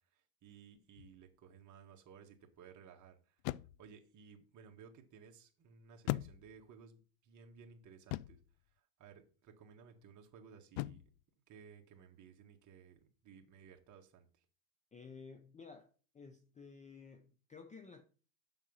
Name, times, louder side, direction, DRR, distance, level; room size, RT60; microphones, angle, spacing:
voice 1, 0.1-3.4 3.8-8.4 9.0-11.0 11.5-14.4, right 6 dB, 35° right, 2.0 m, -58 dB
sound 1, 1.0-1.3 3.4-4.0 6.1-6.8 8.1-8.6 10.8-11.2, left 18 dB, 55° left, 0.5 m, -40 dB
voice 2, 14.9-18.0, left 5 dB, 15° left, 0.8 m, -54 dB
7.4 x 6.4 x 5.6 m
supercardioid pair, 120°, 48 cm